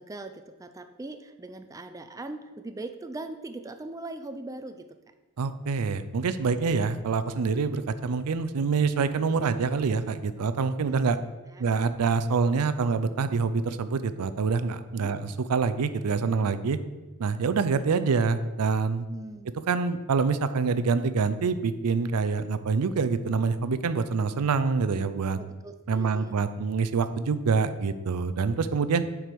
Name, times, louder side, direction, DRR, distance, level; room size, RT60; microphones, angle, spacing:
voice 1, 0.0-4.9 10.8-10.9 11.4-11.7 15.0-15.2 19.1-19.5 25.4-26.4, right 2 dB, 15° right, 8 dB, 0.4 m, -40 dB
voice 2, 5.4-11.2 11.6-16.8 17.2-19.1 19.7-25.4 25.9-29.0, right 5 dB, 85° right, 13 dB, 0.5 m, -26 dB
7.5 x 4.7 x 5.2 m, 1.2 s
head